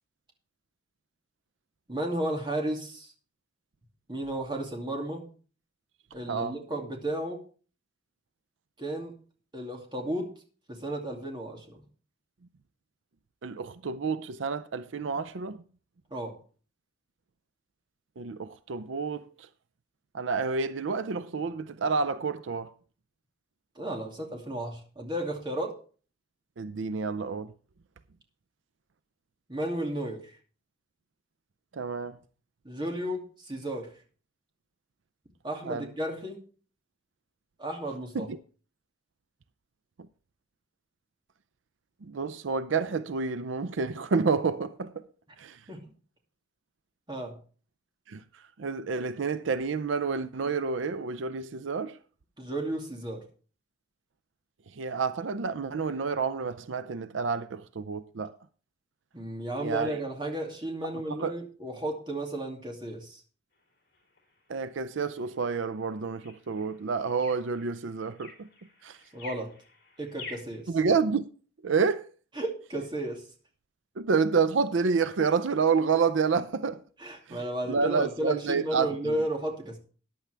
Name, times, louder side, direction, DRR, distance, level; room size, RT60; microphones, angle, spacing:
voice 1, 1.9-3.1 4.1-5.3 6.1-7.4 8.8-9.2 9.5-10.3 10.7-11.8 16.1-16.4 23.8-25.8 29.5-30.4 32.6-33.9 35.4-36.4 37.6-38.3 45.7-45.8 47.1-47.4 52.4-53.2 59.1-63.2 69.1-69.5 70.0-70.7 72.4-73.2 77.0-79.8, right 1 dB, 25° right, 2.4 m, -33 dB
voice 2, 13.4-15.6 18.2-19.5 20.1-22.7 26.6-27.5 31.7-32.2 35.6-35.9 38.1-38.4 42.0-45.0 45.4-45.6 48.1-52.0 54.7-58.3 59.6-60.0 61.1-61.4 64.5-68.5 68.8-69.0 70.7-71.3 71.6-72.1 74.0-76.8 77.3-79.2, right 5 dB, 80° right, 0.5 m, -29 dB
sound 1, 63.5-70.6, left 3 dB, 55° left, 4.0 m, -50 dB
14.0 x 10.0 x 3.4 m
head